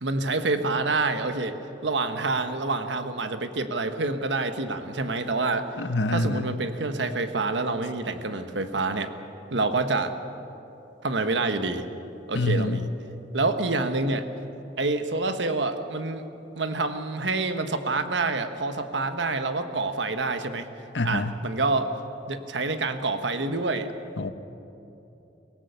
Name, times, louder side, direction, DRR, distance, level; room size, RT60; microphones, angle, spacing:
voice 1, 0.0-1.6 1.8-5.7 6.1-9.1 9.5-10.1 11.0-11.8 12.3-12.9 13.3-14.3 14.8-16.2 16.6-20.7 21.0-21.9 22.3-23.9, right 3 dB, 85° right, 8 dB, 1.3 m, -27 dB
voice 2, 5.8-6.5 12.3-12.8 20.9-21.4 24.2-24.3, left 2 dB, 80° left, 11 dB, 0.9 m, -26 dB
23.5 x 17.5 x 6.9 m, 3.0 s
head